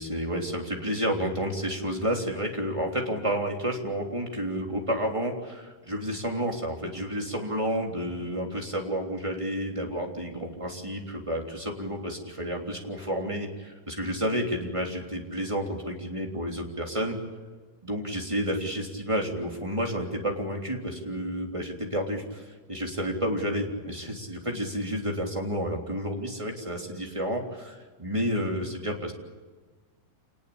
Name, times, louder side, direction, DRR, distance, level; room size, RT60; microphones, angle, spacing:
voice 1, 0.0-17.2 17.8-29.1, equal, 10° right, 1 dB, 3.1 m, -30 dB
27.5 x 20.0 x 8.7 m, 1.4 s
omnidirectional pair, 3.8 m